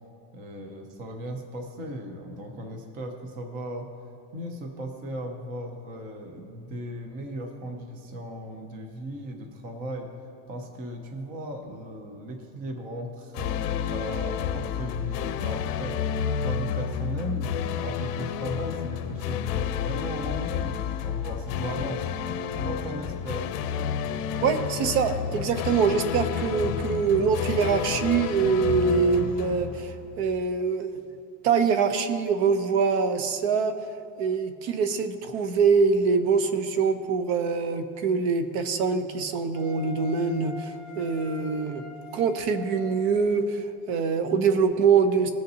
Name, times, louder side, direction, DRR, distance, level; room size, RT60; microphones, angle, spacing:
voice 1, 0.3-3.9 4.3-10.1 10.5-17.5 17.8-22.1 22.6-23.6, right 1 dB, 20° right, 4 dB, 0.4 m, -37 dB
sound 1, 13.3-30.4, left 8 dB, 70° left, 0.7 m, -30 dB
voice 2, 24.4-31.0 31.4-33.7 34.2-41.8 42.1-45.3, right 5 dB, 55° right, 10 dB, 0.7 m, -24 dB
Wind instrument woodwind instrument, 39.5-43.3, left 4 dB, 35° right, 1.2 m, -44 dB
18.5 x 6.6 x 2.8 m, 2.6 s
cardioid pair, 175°, 47 cm